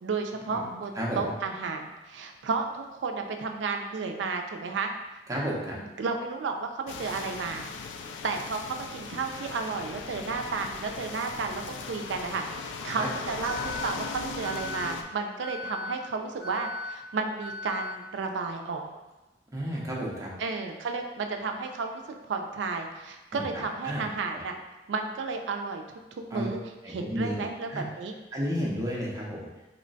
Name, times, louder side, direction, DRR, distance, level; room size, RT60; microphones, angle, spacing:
voice 1, 0.0-4.9 6.0-7.6 8.2-18.9 20.4-22.0 22.3-24.5 24.9-25.8 26.1-26.6 26.9-28.1, right 4 dB, 80° right, 4 dB, 0.4 m, -32 dB
voice 2, 1.0-1.3 5.3-5.8 13.0-13.1 19.5-20.3 23.3-24.0 26.3-26.5 26.8-27.4 27.7-27.9 28.3-29.5, equal, 20° right, -4 dB, 0.6 m, -32 dB
sound 1, 6.9-15.0, left 4 dB, 80° left, 0.3 m, -38 dB
Alarm, 13.4-13.9 14.4-14.9 15.4-15.9 16.4-16.9 17.4-17.9, left 2 dB, 55° left, 0.8 m, -37 dB
3.1 x 2.2 x 3.9 m, 1.0 s
head